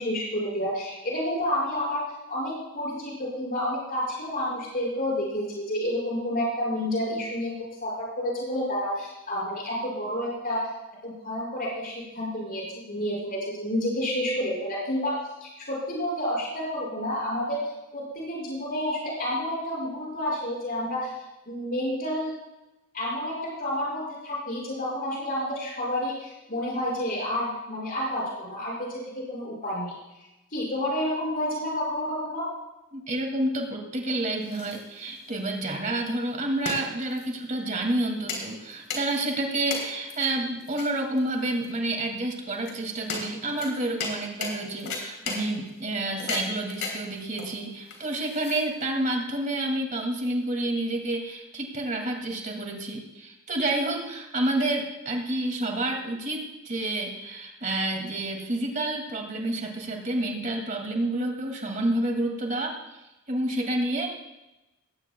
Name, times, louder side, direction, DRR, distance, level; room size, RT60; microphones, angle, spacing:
voice 1, 0.0-7.5 7.8-10.7 11.0-15.2 15.4-17.6 17.9-21.1 21.5-22.3 22.9-29.9 30.5-32.5, left 1 dB, 45° left, -4 dB, 6.1 m, -30 dB
voice 2, 32.9-62.7 63.3-64.1, right 1 dB, 35° right, 2 dB, 2.4 m, -29 dB
sound 1, 34.1-49.0, left 4 dB, 65° left, 3.6 m, -37 dB
19.0 x 16.5 x 2.3 m, 1.0 s
head